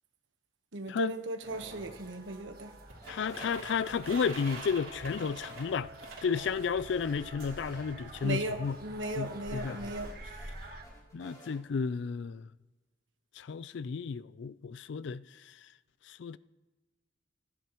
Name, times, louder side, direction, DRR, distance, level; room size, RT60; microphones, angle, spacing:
voice 1, 0.7-2.7 8.2-10.1, right 1 dB, 75° right, 1.2 m, -37 dB
sound 1, 1.4-10.8, right 1 dB, 50° right, 1.6 m, -48 dB
sound 2, 2.9-7.0, right 3 dB, 90° right, 2.9 m, -46 dB
sound 3, 3.0-3.9 4.3-5.8 6.0-6.1 6.5-7.9 8.2-8.3 8.6-10.5 10.8-11.6, equal, 20° left, 3.0 m, -54 dB
voice 2, 3.1-5.9 6.2-8.8 9.1-9.9 11.1-12.5 13.4-15.5 16.1-16.4, left 6 dB, 65° left, 0.4 m, -33 dB
22.0 x 11.5 x 3.0 m
head